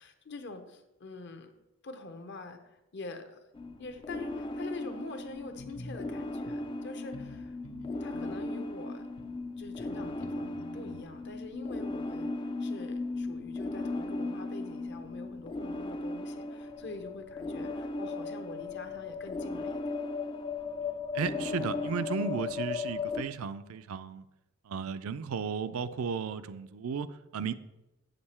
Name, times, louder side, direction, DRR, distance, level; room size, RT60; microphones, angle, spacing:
voice 1, 0.0-1.5 1.8-3.4 3.8-7.6 8.0-9.1 9.3-19.9, left 3 dB, 55° left, 7 dB, 0.8 m, -45 dB
sound 1, 3.5-23.2, left 3 dB, 25° left, 0.3 m, -37 dB
sound 2, 5.5-6.0 6.5-6.6 7.1-7.4 7.6-8.4 9.2-9.3 9.8-11.0, left 1 dB, 85° left, 0.9 m, -47 dB
voice 2, 21.1-24.2 24.7-27.5, right 6 dB, 75° right, 12 dB, 0.4 m, -34 dB
7.8 x 6.7 x 4.3 m, 0.96 s
head